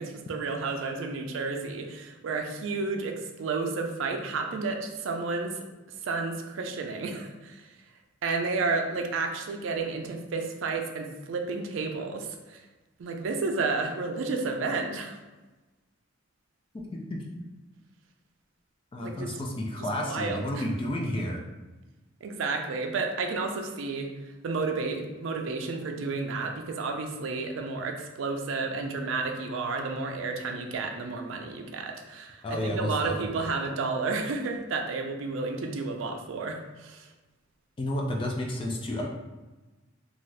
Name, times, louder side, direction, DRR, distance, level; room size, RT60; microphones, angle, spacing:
voice 1, 0.0-5.6 6.0-7.7 8.2-12.6 13.0-15.2 19.0-19.3 19.8-20.6 22.2-24.1 24.4-37.1, right 4 dB, 70° right, 3 dB, 0.4 m, -31 dB
voice 2, 16.7-17.2 18.9-21.4 32.4-33.1 37.8-39.1, left 1 dB, 25° left, 0 dB, 0.3 m, -31 dB
2.6 x 2.3 x 3.2 m, 1.1 s
head